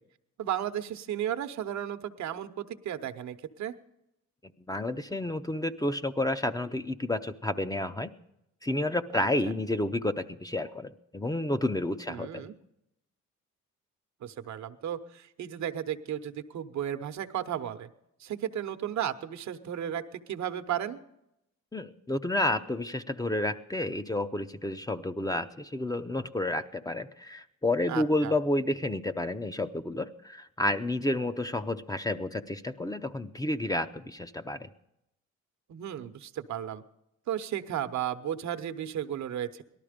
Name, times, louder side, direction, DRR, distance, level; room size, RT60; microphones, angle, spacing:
voice 1, 0.4-3.7 9.1-9.3 12.1-12.5 14.2-17.9 18.2-21.0 27.9-28.3 35.7-36.8 37.3-39.6, right 10 dB, 70° right, 10 dB, 1.0 m, -34 dB
voice 2, 4.4-8.1 8.6-12.5 21.7-34.7, left 1 dB, 10° left, 9 dB, 0.6 m, -30 dB
18.0 x 12.5 x 5.1 m, 0.82 s
cardioid pair, 90°, 30 cm